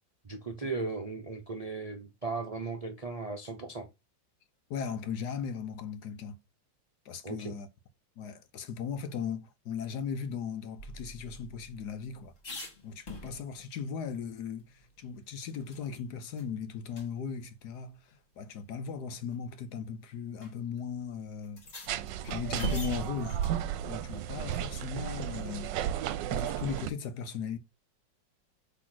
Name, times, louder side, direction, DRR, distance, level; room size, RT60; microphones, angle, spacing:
voice 1, 0.2-3.9 7.2-7.5, right 3 dB, 40° right, 0.5 m, -37 dB
voice 2, 4.7-6.4 7.0-7.7 8.2-12.3 12.8-18.0 18.4-21.6 22.2-23.4 23.8-25.7 26.3-27.6, left 6 dB, 65° left, 1.3 m, -37 dB
sound 1, 10.8-13.8 14.1-14.2 14.6-16.0 16.4-16.5 16.9-17.1 18.1-18.2 19.1-19.4 20.4-20.5 20.8-20.9 21.4-23.6 25.9-26.4, equal, 45° left, 2.2 m, -42 dB
sound 2, 21.9-26.9, right 11 dB, 80° right, 1.3 m, -34 dB
6.2 x 3.6 x 6.0 m
omnidirectional pair, 2.0 m